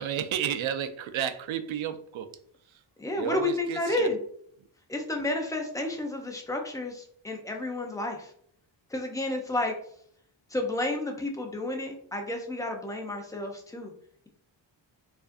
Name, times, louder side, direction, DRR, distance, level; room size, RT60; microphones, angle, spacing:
voice 1, 0.0-2.3 2.7-2.8 3.1-4.1, right 9 dB, 80° right, 9 dB, 0.6 m, -32 dB
voice 2, 3.0-4.2 4.9-8.3 8.9-9.7 10.5-13.9, left 2 dB, 10° left, 2 dB, 0.4 m, -31 dB
4.6 x 2.6 x 2.5 m, 0.63 s
wide cardioid pair, 170°, 47 cm